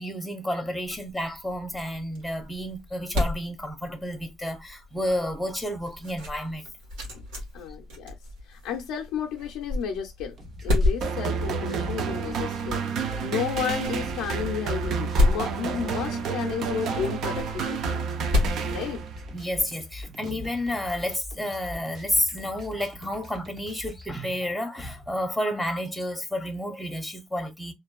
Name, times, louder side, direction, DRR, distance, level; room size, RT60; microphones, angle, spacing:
voice 1, 0.0-6.7 19.3-27.7, left 1 dB, ahead, 0.7 m, -30 dB
sound 1, 0.8-19.6, left 2 dB, 85° right, 1.3 m, -32 dB
voice 2, 7.5-8.1 8.5-10.4 10.6-18.0 18.7-19.0, left 8 dB, 75° left, 0.5 m, -32 dB
sound 2, 10.4-24.1, left 1 dB, 45° right, 0.9 m, -43 dB
sound 3, 11.0-19.3, right 6 dB, 60° right, 0.4 m, -30 dB
2.5 x 2.3 x 2.3 m
supercardioid pair, 90°, 0 cm